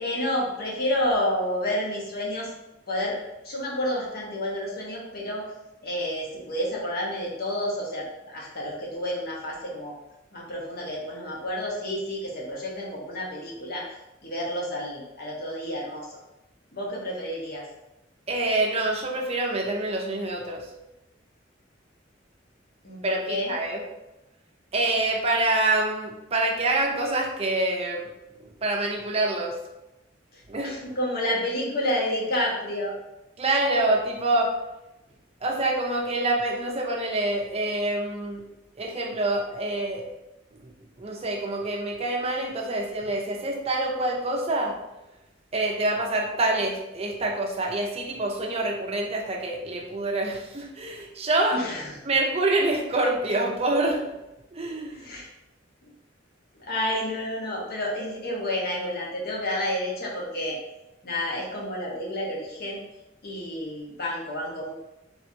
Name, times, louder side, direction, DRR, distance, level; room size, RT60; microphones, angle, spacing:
voice 1, 0.0-2.5 2.9-3.2 3.4-5.5 5.8-10.0 10.3-13.8 14.2-16.2 16.7-17.7 22.8-23.5 30.3-33.0 51.5-52.0 54.9-55.3 55.8-55.9 56.5-60.6 61.0-62.8 63.2-64.7, left 1 dB, 55° left, -3 dB, 1.1 m, -30 dB
voice 2, 18.3-20.7 23.0-23.8 24.7-28.1 28.6-29.6 30.5-30.8 33.4-34.5 35.4-38.4 38.8-40.0 40.6-40.7 41.0-44.8 45.5-51.6 52.0-54.1 54.5-55.1, right 2 dB, 35° right, 0 dB, 0.6 m, -26 dB
4.4 x 3.4 x 2.8 m, 0.94 s
head